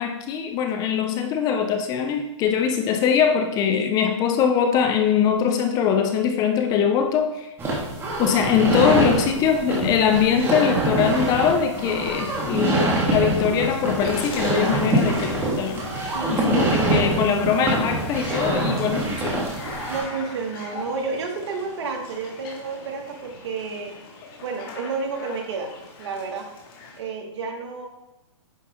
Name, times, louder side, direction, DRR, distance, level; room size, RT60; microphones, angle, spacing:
voice 1, 0.0-7.5 8.2-19.5, left 7 dB, 25° left, 6 dB, 0.7 m, -22 dB
sound 1, 7.6-20.0, right 1 dB, 15° right, 1.8 m, -25 dB
sound 2, 11.7-27.0, left 3 dB, 45° left, 2.1 m, -40 dB
voice 2, 16.0-17.4 19.9-23.9 24.4-25.7 26.0-26.5 27.0-27.9, right 4 dB, 60° right, 2 dB, 1.9 m, -31 dB
9.8 x 5.5 x 3.6 m, 0.94 s
hypercardioid pair, 145°, 16 cm